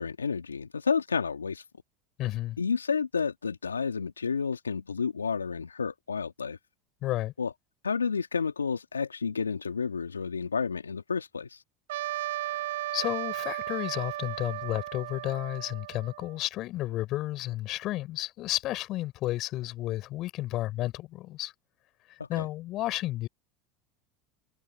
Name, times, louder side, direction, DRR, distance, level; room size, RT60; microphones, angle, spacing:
voice 1, 0.0-1.6 2.6-6.6 7.4-7.5 7.8-11.6 22.2-22.5, left 5 dB, 90° left, 2.1 m, -30 dB
voice 2, 2.2-2.6 7.0-7.3 12.5-12.6 12.9-21.5 22.3-23.3, left 16 dB, 50° left, 5.7 m, -32 dB
Trumpet, 11.9-16.4, right 15 dB, 70° right, 5.1 m, -35 dB
hypercardioid pair, 75°, 0 cm